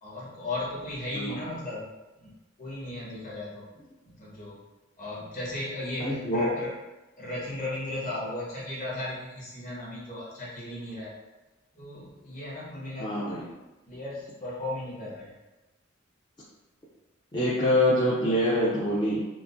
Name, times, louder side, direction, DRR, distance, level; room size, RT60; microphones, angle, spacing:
voice 1, 0.0-1.9 2.2-2.3 2.6-3.7 4.0-4.7 5.0-6.7 7.2-11.1 11.7-13.5 13.9-15.4, left 1 dB, 40° left, -7 dB, 1.2 m, -36 dB
voice 2, 6.0-6.5 13.0-13.4 17.3-19.3, left 1 dB, 20° left, -9 dB, 0.5 m, -25 dB
4.6 x 2.1 x 2.6 m, 1.1 s
head